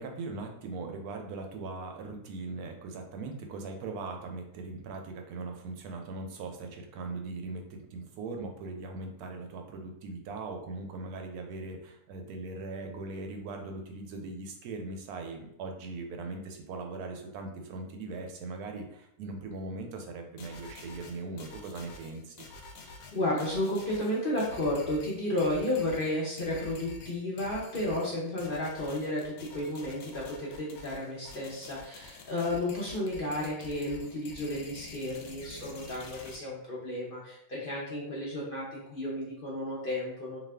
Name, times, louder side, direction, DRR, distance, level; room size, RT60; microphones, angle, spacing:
voice 1, 0.0-22.5, right 3 dB, 90° right, 3 dB, 1.1 m, -40 dB
sound 1, 20.4-36.4, left 3 dB, 80° left, 1.1 m, -48 dB
voice 2, 22.8-40.4, left 1 dB, 50° left, -5 dB, 0.6 m, -32 dB
2.7 x 2.4 x 3.2 m, 0.77 s
omnidirectional pair, 1.6 m